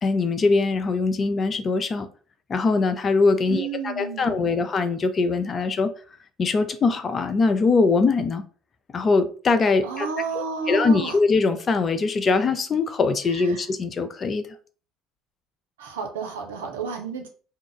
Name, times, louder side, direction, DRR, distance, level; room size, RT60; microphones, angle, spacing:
voice 1, 0.0-2.1 2.5-5.9 6.4-8.4 8.9-10.1 10.3-14.5, left 4 dB, 35° left, 0.4 m, -22 dB
voice 2, 3.5-4.7 9.8-11.2 13.3-13.6 15.8-17.3, right 6 dB, 80° right, 0.6 m, -31 dB
2.4 x 2.1 x 3.8 m
hypercardioid pair, 65°, 0 cm